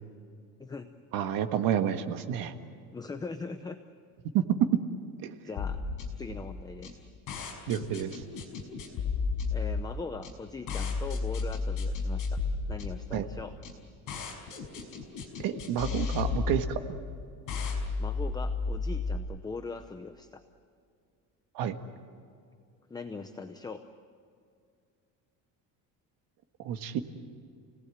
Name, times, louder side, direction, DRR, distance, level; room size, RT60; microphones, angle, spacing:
voice 1, 1.1-2.5 4.3-4.4 5.2-5.3 7.7-8.2 13.1-13.3 15.4-16.8 21.6-21.8 26.6-27.0, right 9 dB, 70° right, 7 dB, 1.7 m, -30 dB
voice 2, 2.9-3.8 5.4-5.8 6.2-7.0 9.5-12.4 12.7-13.5 18.0-20.4 22.9-23.8, left 4 dB, 10° left, 7 dB, 0.7 m, -40 dB
sound 1, 5.6-19.2, left 4 dB, 60° left, 5.4 m, -33 dB
30.0 x 18.5 x 8.4 m, 2.3 s
cardioid pair, 160°, 35 cm